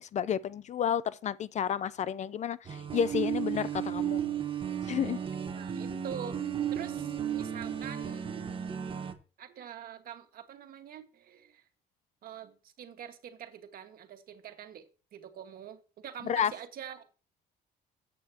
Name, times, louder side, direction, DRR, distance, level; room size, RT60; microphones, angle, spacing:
voice 1, 0.0-4.2 4.9-5.2 16.3-16.5, left 8 dB, 45° left, 0.5 m, -31 dB
sound 1, 2.6-9.1, right 9 dB, 30° right, 1.3 m, -34 dB
voice 2, 5.5-8.4 9.4-11.7 12.2-17.0, right 9 dB, 60° right, 1.7 m, -45 dB
13.0 x 8.5 x 2.9 m
cardioid pair, 110°, 17 cm